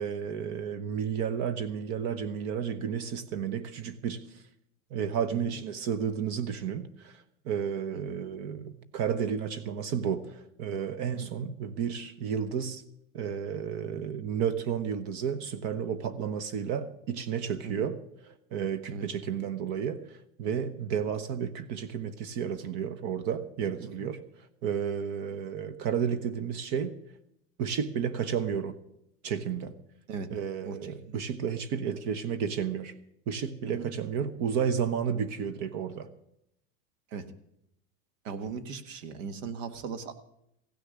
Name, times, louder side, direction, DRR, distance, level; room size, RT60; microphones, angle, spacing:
voice 1, 0.0-4.2 4.9-12.8 13.1-24.2 24.6-26.9 27.6-28.7 29.2-29.7 30.3-32.9 33.3-36.1, right 7 dB, 45° right, 1.0 m, -32 dB
voice 2, 30.6-31.2 33.6-33.9 37.1-37.2 38.3-40.1, right 5 dB, 80° right, 1.6 m, -38 dB
15.5 x 6.6 x 9.9 m
supercardioid pair, 150°, 38 cm